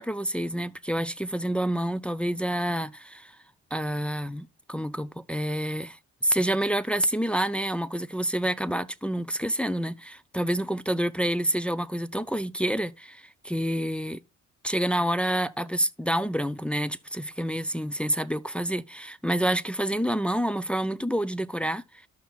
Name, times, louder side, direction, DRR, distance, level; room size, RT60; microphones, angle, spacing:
voice 1, 0.0-3.3 3.7-14.2 14.6-21.8, right 1 dB, 5° left, 0.3 m, -28 dB
14.0 x 5.7 x 2.3 m
cardioid pair, 90°, 30 cm